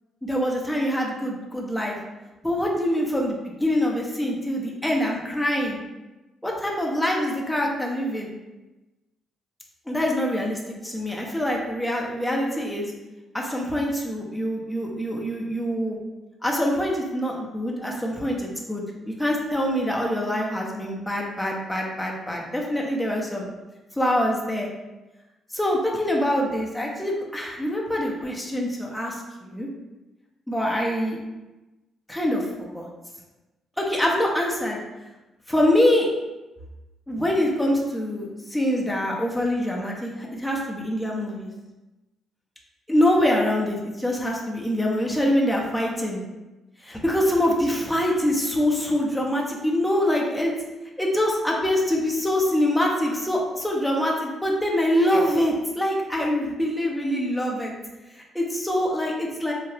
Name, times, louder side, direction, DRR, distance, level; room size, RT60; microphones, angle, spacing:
voice 1, 0.2-2.0 2.4-5.8 6.4-8.3 9.9-12.9 13.3-16.0 16.4-23.4 23.9-24.7 25.5-29.7 30.5-31.2 32.1-32.9 33.8-34.8 35.5-36.1 37.1-41.5 42.9-46.2 46.8-50.5 51.0-57.7 58.3-59.5, left 1 dB, 5° left, -2 dB, 0.6 m, -24 dB
2.8 x 2.1 x 3.1 m, 1.1 s
cardioid pair, 90°, 0 cm